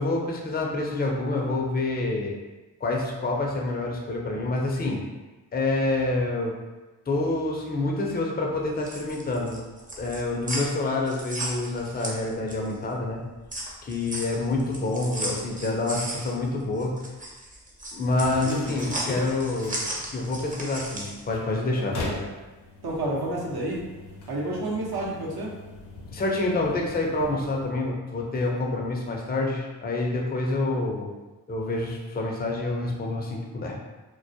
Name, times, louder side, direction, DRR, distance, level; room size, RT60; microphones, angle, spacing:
voice 1, 0.0-2.3 2.8-5.0 5.5-6.6 7.1-9.6 10.0-13.2 13.8-17.0 17.9-19.8 20.1-22.2 26.1-31.1 31.5-33.8, left 2 dB, 20° left, 0 dB, 0.5 m, -27 dB
sound 1, 8.6-12.8 13.1-21.2, right 1 dB, 20° right, 0.6 m, -35 dB
sound 2, 18.0-27.9, left 2 dB, 65° left, 0.7 m, -42 dB
voice 2, 18.1-18.8 21.7-22.3 22.8-23.8 24.3-25.5, right 1 dB, 60° right, -4 dB, 0.9 m, -30 dB
2.2 x 2.0 x 2.7 m, 1.2 s
supercardioid pair, 40°, 43 cm